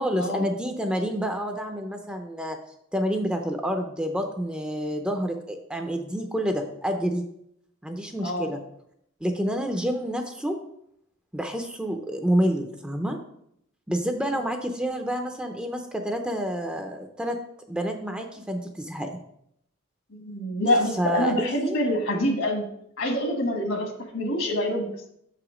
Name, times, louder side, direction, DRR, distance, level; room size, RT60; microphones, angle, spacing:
voice 1, 0.0-2.6 2.9-7.2 7.8-8.6 9.2-10.6 11.3-13.2 13.9-17.4 17.7-19.2 21.0-21.8, equal, 5° right, 4 dB, 0.5 m, -28 dB
voice 2, 20.2-22.6 23.0-24.9, left 1 dB, 65° left, 3 dB, 1.4 m, -26 dB
6.3 x 4.9 x 4.9 m, 0.74 s
head